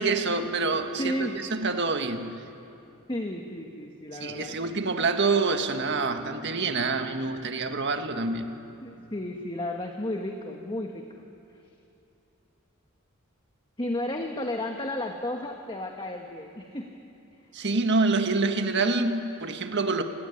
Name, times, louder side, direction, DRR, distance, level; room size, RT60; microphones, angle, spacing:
voice 1, 0.0-2.4 4.1-8.6 17.5-20.0, right 3 dB, 55° right, 6 dB, 1.7 m, -26 dB
voice 2, 1.0-1.4 3.1-4.8 8.1-8.3 8.8-11.2 13.8-16.9, left 1 dB, 25° left, 3 dB, 1.4 m, -33 dB
27.5 x 17.5 x 9.9 m, 2.8 s
head